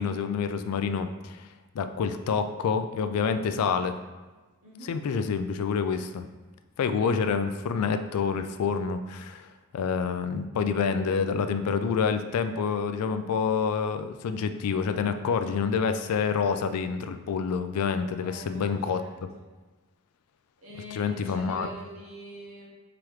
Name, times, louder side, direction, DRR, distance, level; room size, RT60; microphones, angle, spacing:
voice 1, 0.0-1.5 1.8-4.0 4.8-6.2 6.8-9.5 9.7-19.0 20.9-21.7, left 6 dB, 85° left, 9 dB, 0.3 m, -27 dB
voice 2, 4.6-5.1 18.2-19.5 20.6-22.7, left 1 dB, 65° right, -2 dB, 1.0 m, -44 dB
4.9 x 2.9 x 3.1 m, 1.3 s
head